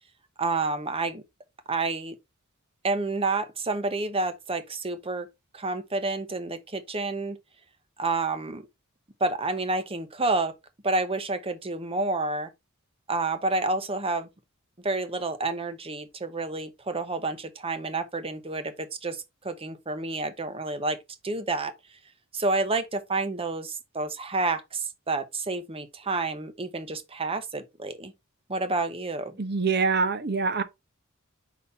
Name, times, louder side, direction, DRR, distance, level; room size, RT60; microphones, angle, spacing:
voice 1, 0.4-1.2 1.7-2.2 2.8-5.3 5.5-7.4 8.0-8.7 9.2-10.5 10.8-12.5 13.1-14.3 14.8-21.0 21.2-21.7 22.3-28.1 28.5-29.4, right 3 dB, 25° right, 0.9 m, -29 dB
voice 2, 29.4-30.6, right 4 dB, 50° right, 0.9 m, -25 dB
5.6 x 4.1 x 4.2 m
head